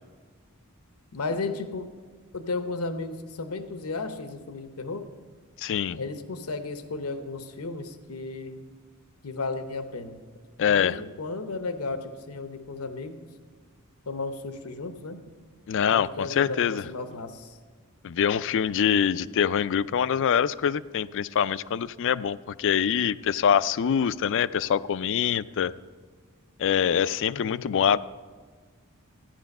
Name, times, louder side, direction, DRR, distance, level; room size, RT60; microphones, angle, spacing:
voice 1, 1.1-1.9 2.3-5.1 5.9-8.6 9.2-10.2 10.6-13.2 14.1-15.2 15.9-17.6 27.3-27.7, left 3 dB, 80° left, 9 dB, 0.9 m, -34 dB
voice 2, 5.6-6.0 10.6-11.0 15.7-16.8 18.0-25.7 26.6-28.0, left 8 dB, 60° left, 17 dB, 0.4 m, -24 dB
14.5 x 10.5 x 5.4 m, 1.5 s
head